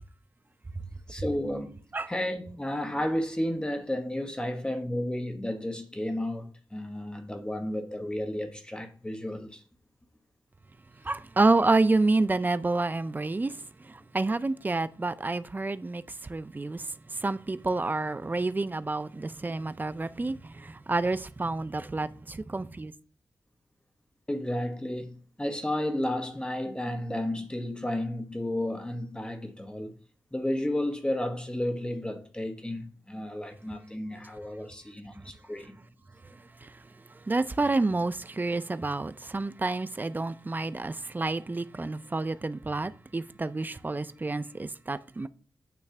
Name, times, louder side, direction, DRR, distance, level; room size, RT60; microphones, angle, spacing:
voice 1, 1.1-1.8 2.1-9.6 24.3-25.1 25.4-29.9 30.3-35.8, left 1 dB, 10° left, 1.2 m, -32 dB
voice 2, 11.0-16.9 17.1-22.9 36.6-36.8 37.2-45.3, right 3 dB, 25° right, 0.4 m, -29 dB
9.2 x 3.2 x 5.9 m
wide cardioid pair, 90°, 7 cm